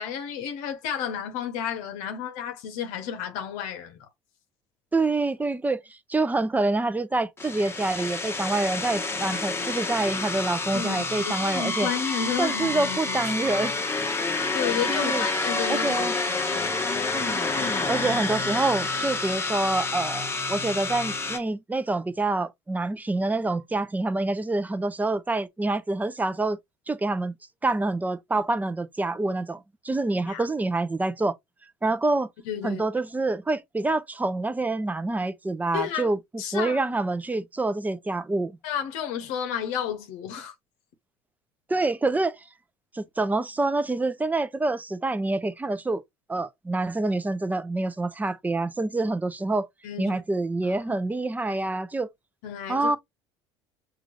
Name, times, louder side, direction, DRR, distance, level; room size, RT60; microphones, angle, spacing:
voice 1, 0.0-4.1 9.3-9.4 10.7-13.3 14.5-17.0 30.3-30.5 32.5-32.8 35.7-36.1 36.4-36.8 38.6-40.5 49.8-50.2 50.6-51.0 52.4-53.0, left 8 dB, 65° left, 0.9 m, -32 dB
voice 2, 4.9-5.8 6.1-11.9 12.4-13.7 14.9-15.3 15.7-16.1 17.9-26.6 26.9-27.3 27.6-31.3 31.8-32.3 32.6-36.2 36.5-38.6 41.7-42.4 42.9-46.0 46.3-49.7 50.0-52.1 52.7-53.0, right 2 dB, 10° right, 0.6 m, -26 dB
sound 1, 7.4-21.4, left 3 dB, 15° left, 1.0 m, -28 dB
6.0 x 2.5 x 3.0 m
hypercardioid pair, 70°, 14 cm